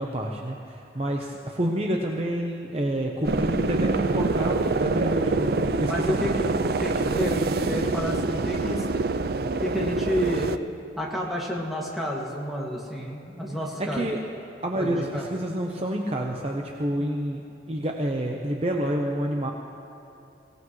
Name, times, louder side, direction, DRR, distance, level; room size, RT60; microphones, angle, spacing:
voice 1, 0.0-6.5 13.8-14.2 14.6-17.4 17.7-19.5, right 1 dB, 35° right, 1 dB, 0.8 m, -28 dB
sound 1, 3.2-10.6, right 3 dB, 55° right, 0.5 m, -25 dB
voice 2, 5.9-8.8 9.5-10.6 11.0-14.1 14.7-15.3, equal, ahead, -4 dB, 2.1 m, -30 dB
23.0 x 17.0 x 3.2 m, 2.8 s
head